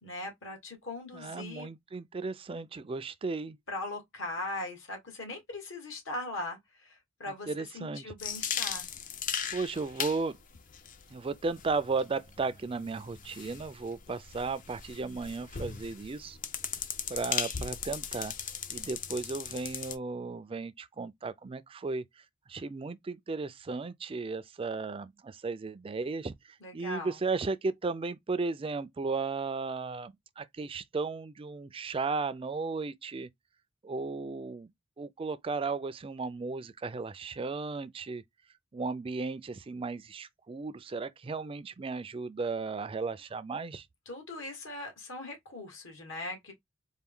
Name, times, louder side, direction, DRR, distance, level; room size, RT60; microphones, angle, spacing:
voice 1, 0.0-1.7 3.7-8.8 26.6-27.2 44.0-46.5, left 2 dB, 70° left, 1.7 m, -40 dB
voice 2, 1.1-3.6 7.5-8.1 9.5-10.4 11.1-16.4 17.1-18.3 18.7-22.0 22.5-26.3 26.7-33.3 33.8-34.7 35.0-38.2 38.7-43.9, right 4 dB, 25° right, 0.4 m, -35 dB
sound 1, 8.2-20.0, left 7 dB, 40° left, 0.5 m, -38 dB
4.4 x 2.2 x 3.6 m
head